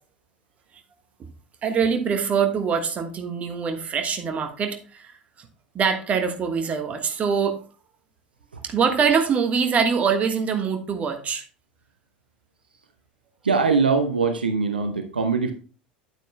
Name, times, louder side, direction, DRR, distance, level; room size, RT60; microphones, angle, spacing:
voice 1, 1.6-5.1 5.7-7.6 8.6-11.4, right 6 dB, 30° right, 6 dB, 1.4 m, -23 dB
voice 2, 13.4-15.5, right 4 dB, 75° right, 6 dB, 0.8 m, -22 dB
9.2 x 9.0 x 2.2 m, 0.38 s
figure-of-eight pair, 75°, 5 cm